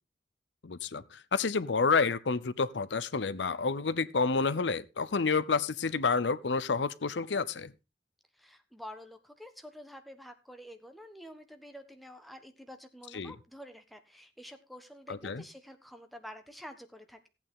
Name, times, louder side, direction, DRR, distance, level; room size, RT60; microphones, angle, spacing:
voice 1, 0.6-7.7 13.1-13.3 15.1-15.4, left 4 dB, 85° left, 16 dB, 0.7 m, -29 dB
voice 2, 8.3-17.3, equal, ahead, 6 dB, 1.3 m, -49 dB
15.0 x 8.7 x 3.7 m, 0.27 s
head